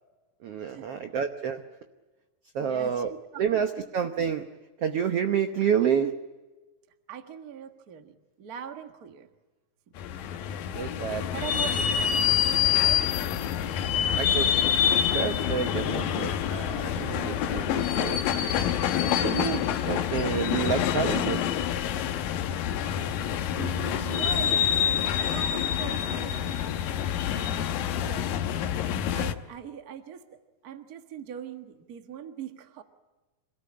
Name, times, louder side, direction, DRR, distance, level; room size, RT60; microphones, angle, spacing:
voice 1, 0.4-1.6 2.5-3.1 3.4-4.5 4.8-6.1 10.7-11.3 13.9-18.2 18.8-21.4, right 7 dB, 65° right, 7 dB, 1.5 m, -29 dB
voice 2, 2.6-3.8 7.1-9.3 11.3-13.1 23.5-26.6 27.3-28.6 29.1-30.2 30.6-32.8, right 9 dB, 45° right, 6 dB, 1.2 m, -42 dB
sound 1, 10.0-29.3, left 9 dB, 80° left, 2.7 m, -27 dB
27.0 x 17.5 x 8.7 m, 1.2 s
omnidirectional pair, 4.0 m